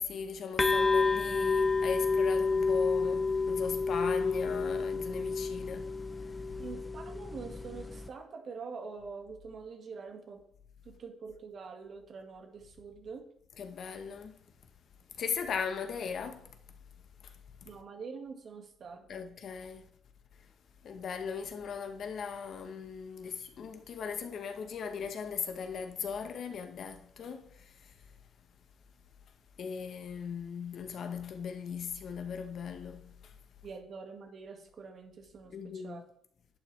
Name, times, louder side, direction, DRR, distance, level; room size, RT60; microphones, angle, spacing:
voice 1, 0.0-5.9 13.6-14.4 15.2-16.4 19.1-19.8 20.8-27.4 29.6-33.1 35.5-36.0, left 6 dB, 60° left, 1.1 m, -38 dB
sound 1, 0.6-8.1, left 4 dB, 25° left, 0.8 m, -30 dB
voice 2, 6.6-10.4 10.8-13.3 17.6-19.3 33.6-36.0, right 5 dB, 55° right, 2.0 m, -45 dB
11.0 x 8.5 x 3.4 m
cardioid pair, 90°, 0 cm